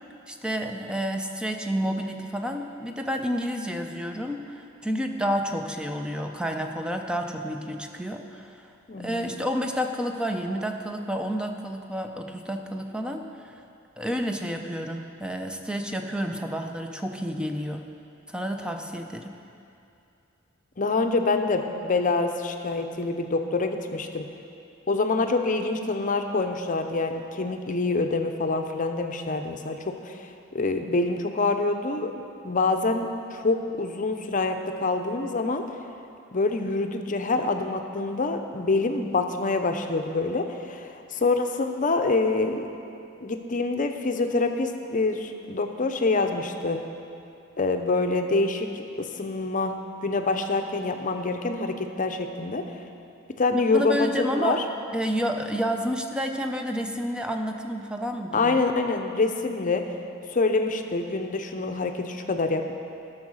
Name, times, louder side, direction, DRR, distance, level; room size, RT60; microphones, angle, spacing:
voice 1, 0.3-8.5 9.0-13.5 14.0-17.8 18.3-19.4 53.5-54.6 54.9-58.6, equal, 5° right, 4 dB, 0.6 m, -30 dB
voice 2, 8.9-9.3 20.8-24.3 24.9-30.2 30.5-32.1 32.4-35.6 36.3-42.7 43.2-46.8 47.6-49.7 50.0-52.6 53.4-54.6 58.3-59.8 60.3-62.7, left 3 dB, 40° left, 6 dB, 0.7 m, -26 dB
12.5 x 6.4 x 6.3 m, 2.6 s
head